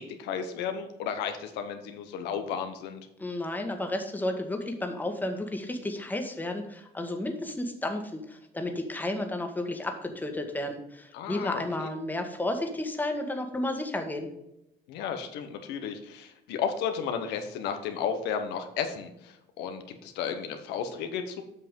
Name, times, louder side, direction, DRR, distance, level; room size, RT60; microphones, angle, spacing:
voice 1, 0.0-3.0 11.1-11.9 14.9-21.4, left 7 dB, 90° left, 6 dB, 1.2 m, -33 dB
voice 2, 3.2-14.3, left 1 dB, 10° left, 4 dB, 1.6 m, -32 dB
8.1 x 5.9 x 5.3 m, 0.84 s
cardioid pair, 110°, 17 cm